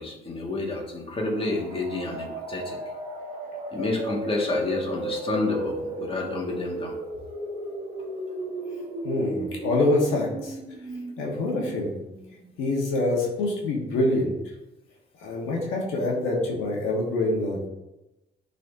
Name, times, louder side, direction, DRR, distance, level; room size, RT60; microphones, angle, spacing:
voice 1, 0.0-2.8 3.7-6.9, left 2 dB, 25° left, -2 dB, 1.9 m, -29 dB
sound 1, 1.1-12.8, right 1 dB, 40° right, 1.4 m, -35 dB
voice 2, 9.0-10.5 11.2-11.9 12.6-14.3 15.2-17.7, left 2 dB, 90° left, -2 dB, 1.5 m, -25 dB
10.5 x 4.2 x 2.8 m, 0.97 s
cardioid pair, 90°, 20 cm